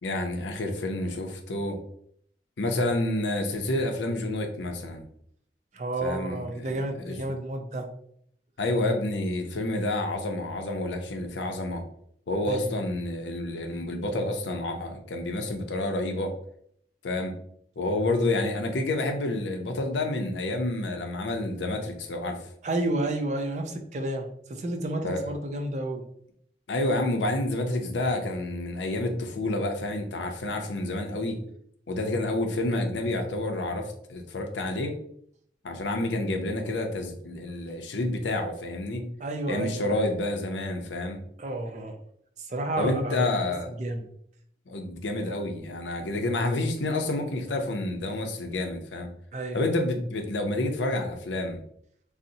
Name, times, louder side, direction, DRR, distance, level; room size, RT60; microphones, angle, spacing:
voice 1, 0.0-1.8 2.6-5.1 6.0-6.7 7.0-7.2 8.6-11.8 12.3-16.3 17.0-17.3 17.8-22.4 25.0-25.3 26.7-31.4 31.9-35.0 35.6-39.0 39.5-41.2 42.8-43.7 44.7-49.1 49.5-51.6, left 2 dB, 85° left, 4 dB, 0.5 m, -29 dB
voice 2, 5.7-7.9 12.4-12.8 22.6-26.0 39.2-40.0 41.4-42.0 42.4-43.3 43.7-44.1 49.3-49.6, right 2 dB, 40° right, 5 dB, 0.4 m, -31 dB
3.9 x 2.0 x 2.6 m, 0.67 s
head